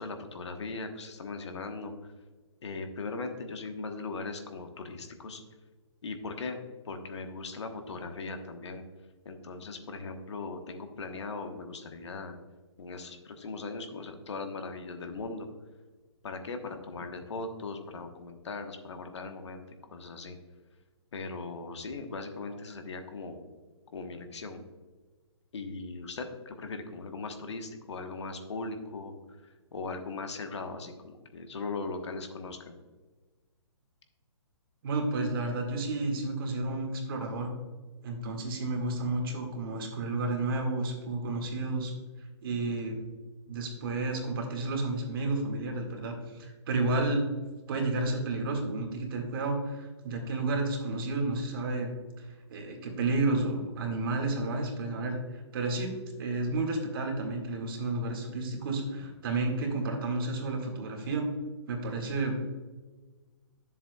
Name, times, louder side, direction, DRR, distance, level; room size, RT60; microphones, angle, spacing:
voice 1, 0.0-2.1 2.6-5.4 6.0-8.8 9.2-12.4 12.8-15.5 16.2-19.6 19.9-20.4 21.1-23.5 23.9-24.6 25.5-29.1 29.7-32.8, left 3 dB, 70° left, 6 dB, 1.2 m, -39 dB
voice 2, 34.8-37.5 38.0-41.9 42.4-43.0 43.5-47.2 47.7-51.9 52.5-55.9 56.2-61.3 61.7-62.3, right 2 dB, 50° right, 1 dB, 2.0 m, -31 dB
11.0 x 7.3 x 2.3 m, 1.3 s
hypercardioid pair, 150°, 15 cm